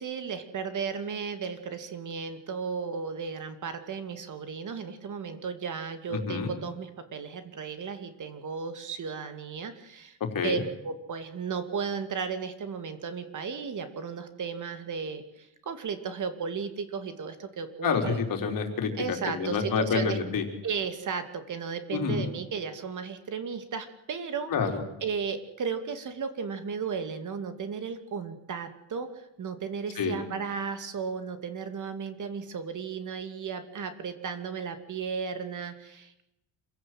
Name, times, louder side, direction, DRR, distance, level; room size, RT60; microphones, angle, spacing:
voice 1, 0.0-10.2 10.4-18.1 18.9-20.2 20.6-24.5 25.0-36.3, right 6 dB, 45° right, 9 dB, 2.6 m, -35 dB
voice 2, 6.1-6.5 10.3-10.6 17.8-18.9 19.3-20.4 21.9-22.2 24.5-24.8 30.0-30.2, left 5 dB, 50° left, 4 dB, 4.4 m, -28 dB
27.0 x 16.5 x 7.9 m, 0.86 s
cardioid pair, 140°, 42 cm